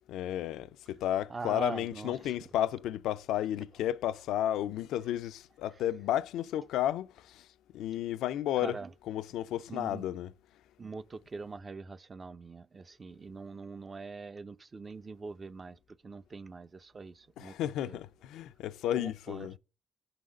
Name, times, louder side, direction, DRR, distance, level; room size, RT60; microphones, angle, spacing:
voice 1, 0.0-7.5 7.7-8.8 9.1-10.3 17.4-19.6, left 12 dB, 85° left, 0.3 m, -33 dB
voice 2, 1.3-2.3 8.6-8.9 9.7-10.1 10.8-15.8 16.0-17.5 17.8-18.0 19.0-19.5, right 4 dB, 35° right, 0.4 m, -42 dB
5.6 x 3.9 x 5.0 m
cardioid pair, 90°, 0 cm